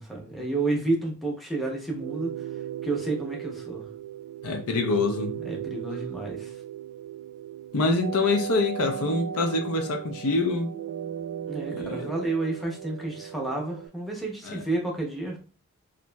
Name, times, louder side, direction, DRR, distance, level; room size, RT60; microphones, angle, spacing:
voice 1, 0.0-2.5 2.8-3.9 5.4-6.6 11.5-15.4, right 2 dB, ahead, 0.6 m, -30 dB
sound 1, 1.9-13.9, right 10 dB, 80° right, 0.3 m, -36 dB
voice 2, 4.4-5.4 7.7-10.7 11.7-12.1 14.4-14.6, left 3 dB, 75° left, 0.5 m, -25 dB
2.9 x 2.5 x 2.2 m
head